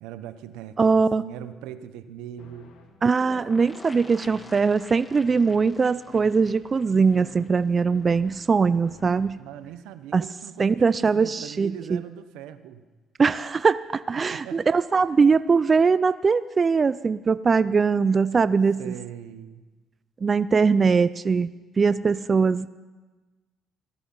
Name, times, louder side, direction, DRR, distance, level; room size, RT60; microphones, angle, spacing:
voice 1, 0.0-2.7 9.3-12.8 14.2-14.6 18.8-19.7, right 10 dB, 85° right, 12 dB, 0.8 m, -40 dB
voice 2, 0.8-1.2 3.0-9.4 10.1-10.2 10.6-12.0 13.2-18.9 20.2-21.5 21.8-22.7, right 5 dB, 35° right, 16 dB, 0.4 m, -21 dB
sound 1, 2.4-9.8, left 3 dB, 75° left, 2.0 m, -51 dB
sound 2, 3.2-7.8 8.1-8.2 8.4-8.5, left 2 dB, 20° left, 2.1 m, -47 dB
17.5 x 13.5 x 5.5 m, 1.2 s
supercardioid pair, 75°, 0 cm